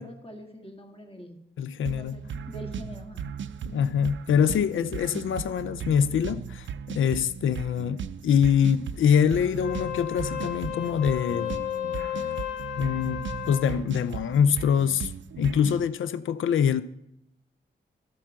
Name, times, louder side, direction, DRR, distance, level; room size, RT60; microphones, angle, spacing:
voice 1, 0.0-1.4 1.8-3.3, equal, 30° left, 1.7 m, -44 dB
voice 2, 1.6-2.2 3.7-11.6 12.8-15.1 15.4-16.8, left 8 dB, 80° left, 0.4 m, -24 dB
sound 1, 1.9-15.9, right 7 dB, 70° right, 0.4 m, -37 dB
Wind instrument woodwind instrument, 9.5-13.8, left 11 dB, 65° left, 1.4 m, -33 dB
12.5 x 4.4 x 7.4 m
cardioid pair, 45°, 20 cm